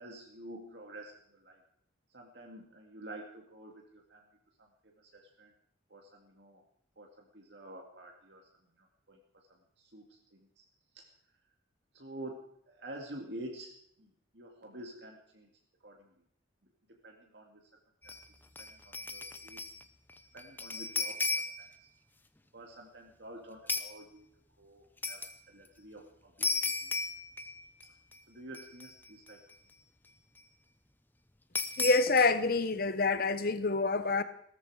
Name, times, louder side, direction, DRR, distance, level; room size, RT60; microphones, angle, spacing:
voice 1, 0.0-1.6 2.1-4.2 4.6-5.5 5.9-6.6 7.0-8.5 8.8-9.2 9.5-10.7 10.9-11.1 11.9-13.7 14.0-15.5 15.8-16.1 16.9-17.7 18.0-19.7 20.3-21.9 22.5-24.3 24.6-26.6 26.8-27.0 28.3-29.4, right 1 dB, 60° right, 2.2 m, -49 dB
sound 1, 18.0-18.2 18.6-19.8 20.1-21.7 23.7-24.0 25.0-25.3 26.4-27.8 28.1-28.2 28.5-29.3 31.5-32.2, left 3 dB, 10° left, 0.7 m, -35 dB
voice 2, 31.8-34.2, left 3 dB, 50° left, 1.1 m, -27 dB
18.0 x 13.5 x 4.9 m
head